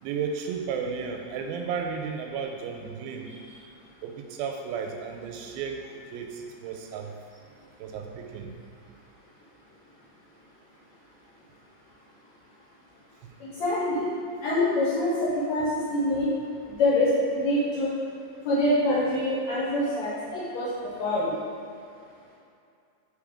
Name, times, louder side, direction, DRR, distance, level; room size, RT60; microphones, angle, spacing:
voice 1, 0.0-3.3 4.0-5.8 6.1-7.1 7.8-8.5 16.1-16.2, right 6 dB, 90° right, 3 dB, 2.5 m, -33 dB
voice 2, 13.4-14.1 14.4-16.3 16.7-17.9 18.4-21.3, left 1 dB, 65° left, -8 dB, 2.0 m, -25 dB
5.7 x 3.5 x 5.0 m, 2.5 s
omnidirectional pair, 4.2 m